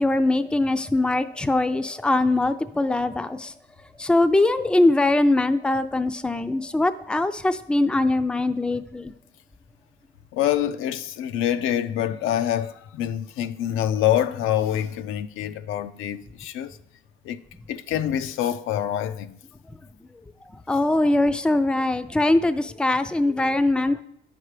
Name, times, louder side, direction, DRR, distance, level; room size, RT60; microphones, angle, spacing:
voice 1, 0.0-3.5 4.0-9.1 20.7-24.0, left 2 dB, 5° left, 0.4 m, -22 dB
voice 2, 10.3-16.8 17.2-17.4 17.7-19.4, left 11 dB, 85° left, 0.4 m, -26 dB
9.3 x 6.0 x 3.2 m
cardioid pair, 90°, 20 cm